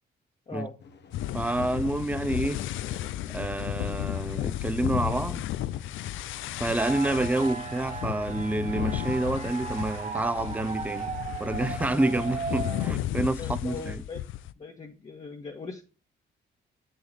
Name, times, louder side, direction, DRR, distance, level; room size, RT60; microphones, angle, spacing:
sound 1, 0.8-13.5, left 5 dB, 60° left, 1.2 m, -52 dB
sound 2, 1.1-14.5, left 13 dB, 80° left, 0.5 m, -34 dB
voice 1, 1.3-2.6 3.3-5.5 6.6-11.1 11.4-14.0, right 2 dB, 5° right, 0.6 m, -28 dB
sound 3, 6.8-12.9, right 5 dB, 35° right, 1.0 m, -36 dB
voice 2, 13.4-14.2 14.6-15.8, left 4 dB, 35° left, 1.5 m, -40 dB
7.8 x 6.6 x 4.1 m
cardioid pair, 90°, 20 cm